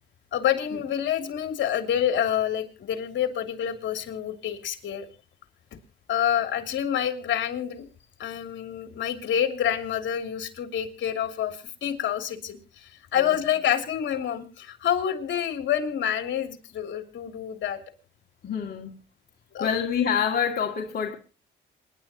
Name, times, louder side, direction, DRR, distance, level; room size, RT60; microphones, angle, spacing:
voice 1, 0.3-5.1 6.1-7.9 8.2-17.8 19.5-19.8, left 9 dB, 70° left, 3.0 m, -27 dB
voice 2, 18.4-19.0 19.6-21.1, left 7 dB, 50° left, 2.4 m, -27 dB
27.5 x 11.0 x 2.9 m
cardioid pair, 90°, 20 cm